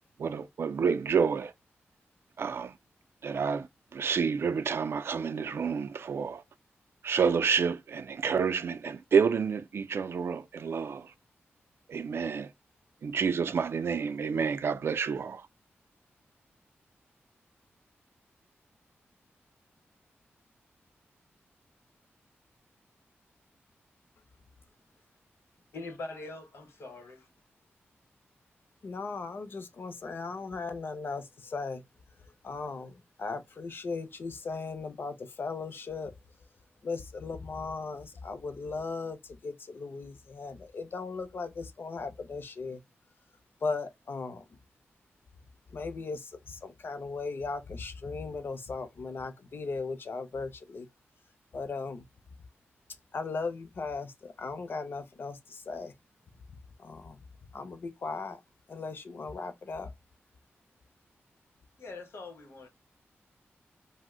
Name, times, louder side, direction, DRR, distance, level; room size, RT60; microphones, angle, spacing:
voice 1, 0.2-1.5 2.4-2.8 3.2-6.4 7.0-11.1 11.9-12.5 13.0-15.5, right 6 dB, 65° right, 0.3 m, -29 dB
voice 2, 25.7-27.3 61.8-62.7, left 3 dB, 75° left, 0.9 m, -43 dB
voice 3, 28.8-31.8 32.4-36.1 36.8-42.8 43.6-44.4 45.7-50.9 51.5-52.0 53.1-55.9 56.8-57.2 57.5-58.4 58.7-59.9, left 4 dB, 55° left, 0.5 m, -37 dB
2.5 x 2.1 x 3.6 m
wide cardioid pair, 110°, 4 cm